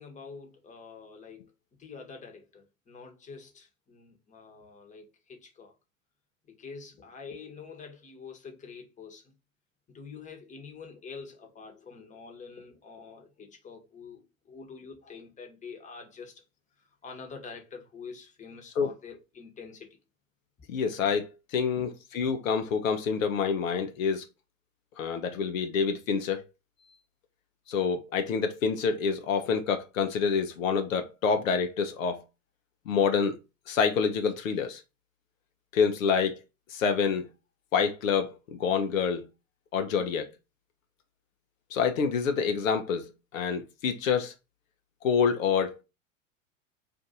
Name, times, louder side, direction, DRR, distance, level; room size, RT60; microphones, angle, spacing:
voice 1, 0.0-1.5 1.8-5.7 6.5-9.3 9.9-16.4 17.0-20.0, left 5 dB, 20° left, 1.0 m, -46 dB
voice 2, 20.7-24.2 25.0-26.4 27.7-32.2 32.9-33.4 33.7-34.8 35.7-36.4 36.7-37.3 37.7-39.3 39.7-40.3 41.7-44.3 45.0-45.8, left 6 dB, 80° left, 0.7 m, -27 dB
2.5 x 2.5 x 4.1 m
hypercardioid pair, 90°, 39 cm